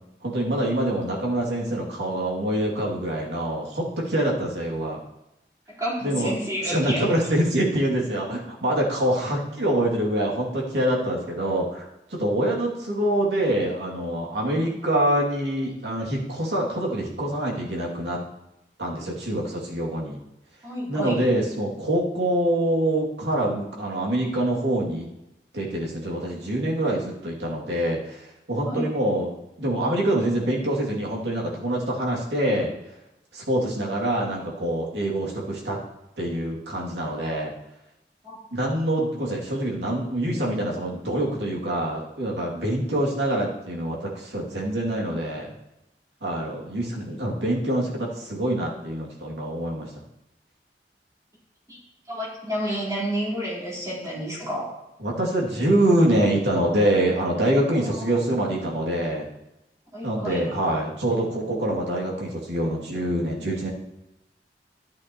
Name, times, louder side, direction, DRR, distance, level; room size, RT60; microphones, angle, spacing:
voice 1, 0.2-5.0 6.0-6.3 6.7-18.2 18.8-20.2 20.9-25.1 25.5-28.2 28.5-29.3 29.6-32.7 33.3-35.8 36.2-37.5 38.5-45.5 46.2-49.9 55.0-59.3 60.0-63.7, right 1 dB, 85° right, -3 dB, 2.6 m, -25 dB
voice 2, 5.7-7.1 9.2-9.3 14.5-14.7 20.6-21.2 28.6-28.9 38.2-38.4 51.7-51.8 52.1-54.7 57.8-58.1 59.9-60.5, equal, 20° right, -7 dB, 4.1 m, -30 dB
12.0 x 10.5 x 3.0 m, 0.89 s
head